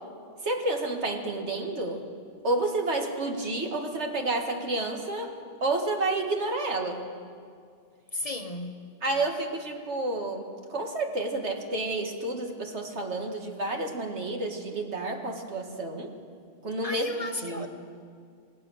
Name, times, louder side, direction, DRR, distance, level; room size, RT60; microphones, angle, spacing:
voice 1, 0.4-2.0 2.4-7.0 9.0-16.1 16.6-17.1 17.4-17.7, right 2 dB, 75° right, 2 dB, 2.3 m, -30 dB
voice 2, 8.1-8.8 16.8-17.7, left 2 dB, 35° left, 5 dB, 1.1 m, -34 dB
27.0 x 17.5 x 6.5 m, 2.3 s
omnidirectional pair, 1.2 m